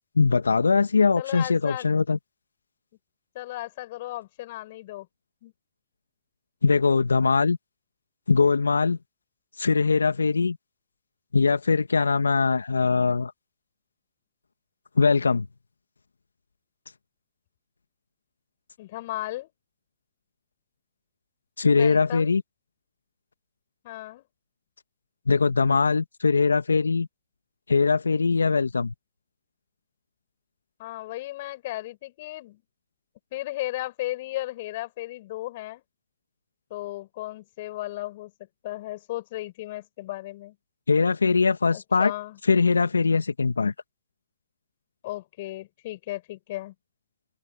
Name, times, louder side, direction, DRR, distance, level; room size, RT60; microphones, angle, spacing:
voice 1, 0.2-2.2 6.6-7.6 8.3-9.0 9.6-10.6 11.3-13.3 15.0-15.5 21.6-22.4 25.3-27.1 27.7-28.9 40.9-42.1 42.5-43.7, left 4 dB, 85° left, 1.9 m, -21 dB
voice 2, 1.2-1.9 3.3-5.1 5.4-5.5 18.8-19.5 21.7-22.3 23.8-24.3 30.8-32.6 33.3-35.8 36.7-38.3 38.6-40.5 41.7-42.4 45.0-46.7, left 17 dB, 55° left, 6.2 m, -35 dB
figure-of-eight pair, 110°, 0 cm